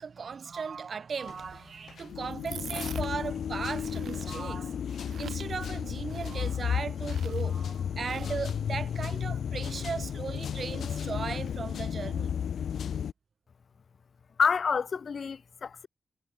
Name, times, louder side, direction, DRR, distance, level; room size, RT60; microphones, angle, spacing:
voice 1, 0.0-12.3, right 5 dB, 50° right, 3.2 m, -37 dB
sound 1, 1.3-1.6 1.9-13.1, left 8 dB, 90° left, 1.2 m, -33 dB
sound 2, 1.3-8.8, right 8 dB, 85° right, 6.1 m, -47 dB
voice 2, 14.4-15.9, left 5 dB, 50° left, 0.9 m, -28 dB
wide cardioid pair, 150°, 0 cm